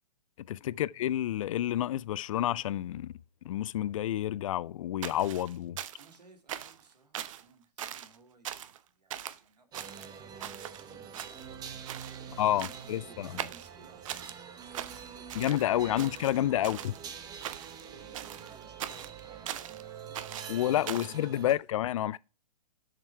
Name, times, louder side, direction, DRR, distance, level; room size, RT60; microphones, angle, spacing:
voice 1, 0.5-3.1 3.4-5.8 12.4-13.3 15.3-16.9 20.5-22.2, left 12 dB, 55° left, 0.4 m, -29 dB
sound 1, 5.0-6.2 6.5-6.8 7.1-7.4 7.8-8.2 8.5-8.8 9.1-9.4 9.7-10.8 11.1-11.6 11.9-12.2 12.6-13.0 13.4-14.4 14.7-15.7 16.0-17.0 17.4-17.8 18.1-19.8 20.1-21.2, right 11 dB, 55° right, 0.7 m, -40 dB
voice 2, 6.0-16.9 17.8-21.6, right 3 dB, 85° right, 2.3 m, -60 dB
sound 2, 9.7-21.5, right 7 dB, 20° right, 0.9 m, -46 dB
7.4 x 6.7 x 4.5 m
hypercardioid pair, 125°, 20 cm